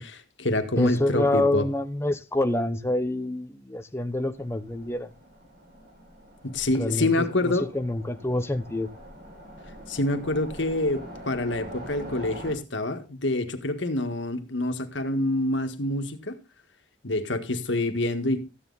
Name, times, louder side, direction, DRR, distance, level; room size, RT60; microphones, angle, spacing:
voice 1, 0.0-1.7 6.4-7.7 9.9-16.4 17.0-18.5, left 2 dB, 85° left, 1.8 m, -27 dB
voice 2, 0.7-5.1 6.7-8.9, left 1 dB, 15° left, 0.9 m, -27 dB
Train, 4.3-12.5, equal, 55° right, 6.2 m, -44 dB
14.0 x 9.6 x 4.0 m
head